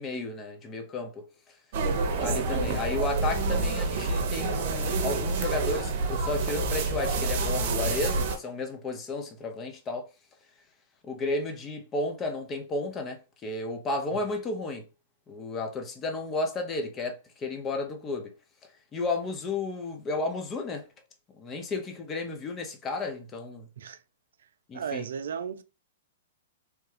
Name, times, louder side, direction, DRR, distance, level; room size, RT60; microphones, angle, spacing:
voice 1, 0.0-1.6 2.2-10.1 11.0-14.8 15.3-18.3 18.9-20.9 21.4-23.7 24.7-25.1, left 2 dB, 25° left, 0.7 m, -33 dB
sound 1, 1.7-8.4, right 3 dB, 55° right, 0.7 m, -28 dB
voice 2, 1.8-2.1 14.1-14.2 23.8-24.0 24.7-25.6, right 7 dB, 75° right, 0.3 m, -35 dB
3.2 x 2.3 x 3.2 m
hypercardioid pair, 120°, 0 cm